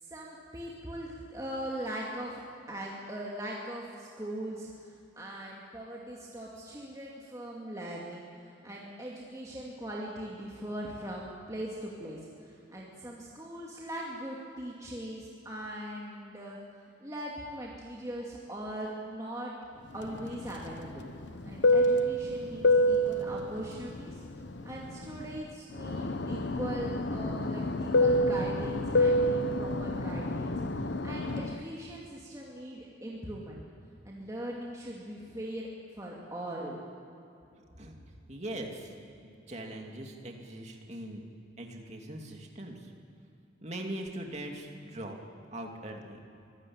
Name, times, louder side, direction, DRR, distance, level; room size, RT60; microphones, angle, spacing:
voice 1, 0.0-16.6 17.0-19.5 19.9-21.1 21.4-24.2 24.6-33.7 34.0-36.8, right 1 dB, 15° right, -4 dB, 2.4 m, -40 dB
Fixed-wing aircraft airplane, 20.0-25.4 25.7-31.6, left 1 dB, 65° left, 1.0 m, -28 dB
voice 2, 38.3-38.9 39.5-41.2 41.6-42.9 43.6-45.2 45.5-46.2, right 1 dB, 35° right, 2 dB, 2.6 m, -41 dB
24.5 x 15.5 x 8.8 m, 2.7 s
head